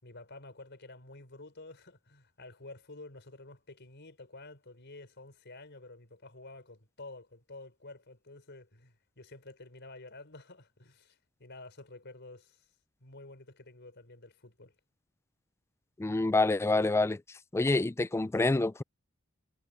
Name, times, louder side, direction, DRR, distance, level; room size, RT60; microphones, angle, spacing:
voice 1, 0.0-12.7 13.0-14.7, left 2 dB, 55° left, 4.6 m, -50 dB
voice 2, 16.0-17.2 17.5-18.8, left 2 dB, 10° left, 0.3 m, -27 dB
head